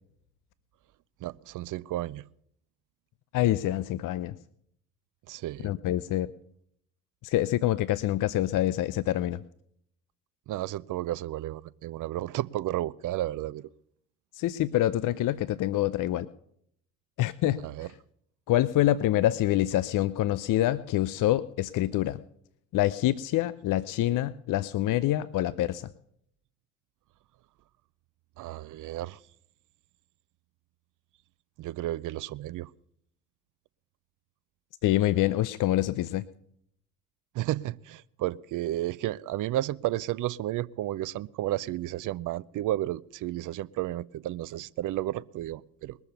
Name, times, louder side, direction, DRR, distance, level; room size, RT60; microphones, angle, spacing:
voice 1, 1.2-2.2 5.3-5.7 10.5-13.7 17.6-17.9 28.4-29.2 31.6-32.7 37.3-46.0, right 14 dB, 45° right, 20 dB, 0.6 m, -32 dB
voice 2, 3.3-4.4 5.6-6.3 7.2-9.4 14.4-16.3 17.2-17.6 18.5-22.2 22.7-25.9 34.8-36.3, left 14 dB, 50° left, 18 dB, 0.6 m, -26 dB
21.0 x 7.0 x 6.8 m, 0.69 s
hypercardioid pair, 55°, 42 cm